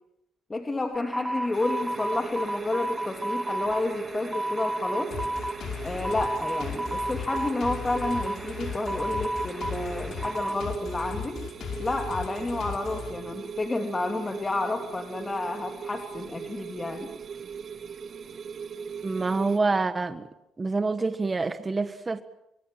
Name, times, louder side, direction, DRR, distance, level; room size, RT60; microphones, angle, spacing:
voice 1, 0.5-5.1 5.8-11.4 11.8-17.1, left 2 dB, 25° left, 3.0 m, -30 dB
sound 1, 0.9-10.6, right 1 dB, 5° right, 1.7 m, -33 dB
sound 2, 1.5-19.6, right 6 dB, 55° right, 2.0 m, -39 dB
sound 3, 5.1-13.1, left 7 dB, 70° left, 4.9 m, -37 dB
voice 2, 19.0-20.3 20.6-22.2, right 3 dB, 25° right, 1.5 m, -26 dB
25.0 x 24.0 x 7.6 m
cardioid pair, 90°, 0 cm